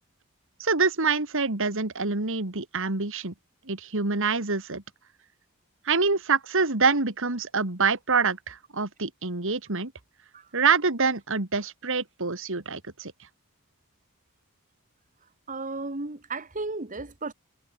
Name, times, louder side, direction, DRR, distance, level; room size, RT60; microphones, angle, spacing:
voice 1, 0.6-3.3 3.7-4.8 5.8-9.9 10.5-13.1, right 4 dB, 65° right, 2.5 m, -26 dB
voice 2, 15.5-17.3, right 3 dB, 40° right, 2.1 m, -34 dB
head